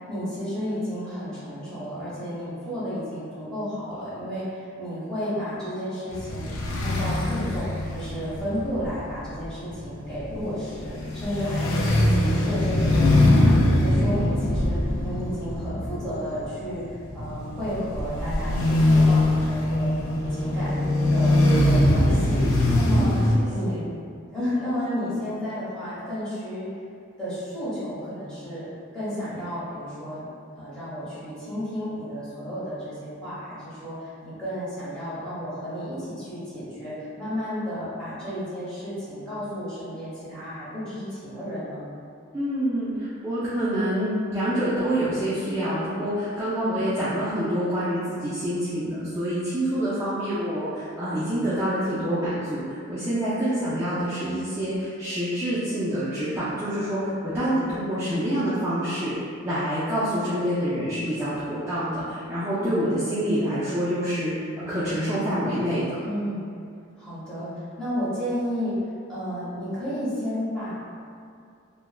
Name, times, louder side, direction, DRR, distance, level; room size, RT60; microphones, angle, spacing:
voice 1, 0.1-13.6 13.8-19.9 20.3-22.4 22.7-23.2 23.5-23.8 24.3-26.7 27.2-28.7 28.9-30.2 30.6-41.8 46.6-46.8 66.0-66.4 67.0-68.7 69.1-70.7, equal, 5° left, -13 dB, 1.0 m, -32 dB
sound 1, 6.1-23.4, left 1 dB, 80° left, 0.4 m, -22 dB
voice 2, 22.9-23.8 42.3-66.0, equal, 15° right, -12 dB, 0.4 m, -27 dB
3.2 x 2.1 x 2.3 m, 2.3 s
head